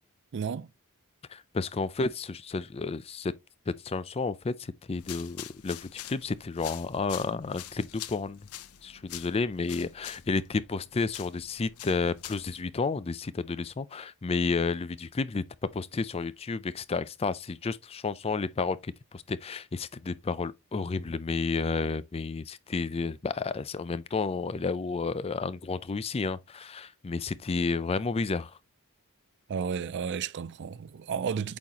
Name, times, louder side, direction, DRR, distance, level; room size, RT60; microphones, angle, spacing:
voice 1, 0.3-0.7 29.5-31.6, right 6 dB, 55° right, 0.4 m, -32 dB
voice 2, 1.3-3.3 3.7-8.4 8.8-15.4 15.7-28.6, left 4 dB, 25° left, 0.4 m, -31 dB
sound 1, 4.9-12.6, left 13 dB, 90° left, 0.6 m, -45 dB
8.5 x 4.1 x 2.9 m
head